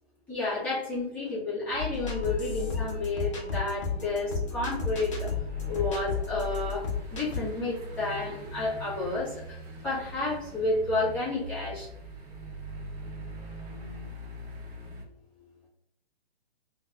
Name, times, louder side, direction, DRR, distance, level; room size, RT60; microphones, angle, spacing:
voice 1, 0.3-5.3 5.7-6.8 7.1-9.5 9.8-11.9, left 2 dB, 5° left, -10 dB, 0.9 m, -31 dB
sound 1, 1.7-15.0, right 1 dB, 40° right, 1.0 m, -43 dB
sound 2, 1.8-7.4, left 5 dB, 30° left, 0.6 m, -33 dB
5.6 x 2.2 x 2.4 m, 0.80 s
figure-of-eight pair, 130°, 32 cm